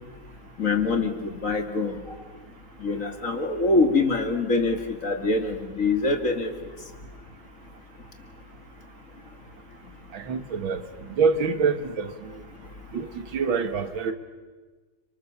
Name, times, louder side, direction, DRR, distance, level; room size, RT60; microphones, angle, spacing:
voice 1, 0.6-2.0 2.8-6.5, left 3 dB, 40° left, 2.5 m, -24 dB
voice 2, 10.1-10.8 11.2-12.3 12.9-14.1, right 5 dB, 85° right, 2.4 m, -26 dB
29.5 x 26.5 x 7.1 m
omnidirectional pair, 2.1 m